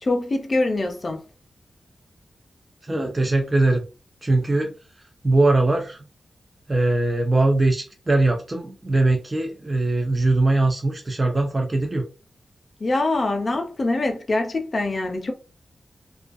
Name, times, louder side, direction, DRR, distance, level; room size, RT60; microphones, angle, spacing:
voice 1, 0.0-1.2 12.8-15.3, left 2 dB, 35° left, 0.5 m, -24 dB
voice 2, 2.9-3.8 4.2-4.7 5.2-6.0 6.7-12.1, right 2 dB, 20° right, 0.3 m, -21 dB
2.3 x 2.2 x 2.5 m
wide cardioid pair, 170°, 0 cm